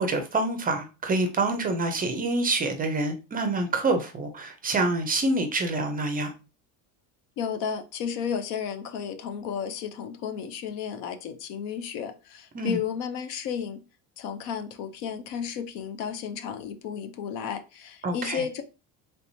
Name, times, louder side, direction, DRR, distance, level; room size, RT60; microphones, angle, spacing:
voice 1, 0.0-6.3 12.5-12.8 18.0-18.4, right 2 dB, 20° right, 0.4 m, -26 dB
voice 2, 7.4-13.8 14.2-18.6, left 7 dB, 70° left, 0.6 m, -33 dB
3.3 x 2.9 x 2.7 m
supercardioid pair, 115°, 41 cm